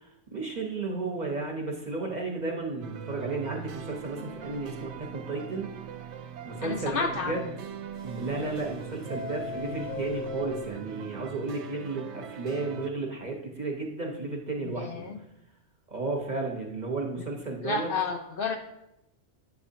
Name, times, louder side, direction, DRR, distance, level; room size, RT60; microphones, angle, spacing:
voice 1, 0.3-5.7 6.4-7.4 8.0-15.1 15.9-17.9, right 3 dB, 40° right, 0 dB, 0.9 m, -33 dB
sound 1, 2.8-12.9, right 7 dB, 70° right, 0.9 m, -41 dB
Subway metro underground, 3.9-4.0 4.4-4.5 4.8-4.9 5.4-5.5 8.0-8.7 9.0-10.7, left 4 dB, 35° left, 2.7 m, -38 dB
voice 2, 6.6-7.6 14.6-15.2 17.2-17.3 17.6-18.6, left 4 dB, 60° left, 5 dB, 0.6 m, -31 dB
9.3 x 7.0 x 2.7 m, 0.86 s
omnidirectional pair, 1.3 m